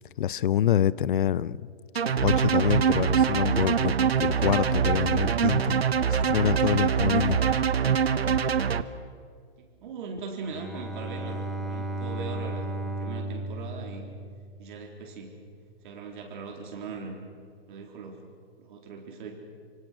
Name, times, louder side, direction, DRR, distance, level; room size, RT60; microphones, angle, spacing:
voice 1, 0.2-1.6 2.2-5.8 6.1-7.4, left 10 dB, 55° left, 21 dB, 0.7 m, -26 dB
sound 1, 2.0-8.8, right 7 dB, 75° right, 1.2 m, -24 dB
voice 2, 9.6-14.0 14.6-15.4 15.8-17.2 17.7-18.3 18.6-19.4, right 4 dB, 50° right, 1 dB, 4.1 m, -40 dB
Bowed string instrument, 10.4-14.7, right 1 dB, ahead, 2.3 m, -35 dB
26.5 x 25.0 x 6.4 m, 2.2 s
figure-of-eight pair, 125°, 31 cm